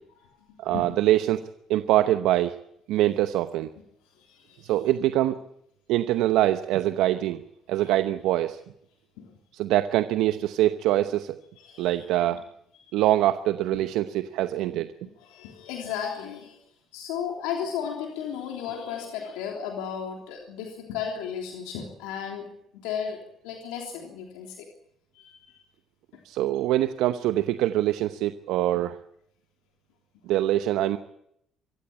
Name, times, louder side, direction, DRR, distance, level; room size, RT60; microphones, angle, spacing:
voice 1, 0.6-1.4 1.7-2.6 2.9-3.7 4.6-5.4 5.9-7.4 7.7-8.6 9.5-11.4 11.8-12.4 12.9-14.9 26.2-29.0 30.3-31.0, right 14 dB, 75° right, 11 dB, 0.9 m, -24 dB
voice 2, 4.1-4.7 7.7-7.9 9.2-9.3 11.6-12.1 15.2-16.6 16.9-22.5 22.7-24.7 25.1-25.6, left 8 dB, 85° left, 1 dB, 3.3 m, -35 dB
24.5 x 15.5 x 8.7 m, 0.77 s
supercardioid pair, 65°, 0 cm